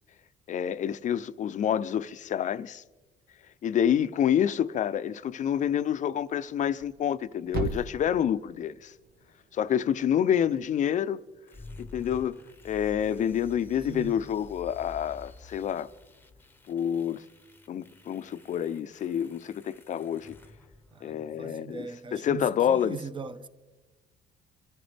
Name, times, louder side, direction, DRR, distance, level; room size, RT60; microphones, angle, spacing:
voice 1, 0.5-2.8 3.6-8.9 9.5-11.2 11.8-12.4 12.6-15.9 16.7-17.2 17.7-20.4 21.0-23.0, left 9 dB, 45° left, 0.6 m, -28 dB
Thump thud, 6.6-10.7, right 4 dB, 65° right, 1.8 m, -40 dB
sound 1, 11.5-21.4, left 2 dB, 10° left, 1.0 m, -50 dB
voice 2, 13.9-14.2 20.9-23.5, right 5 dB, 30° right, 1.0 m, -40 dB
26.5 x 14.0 x 3.4 m
cardioid pair, 110°, 17 cm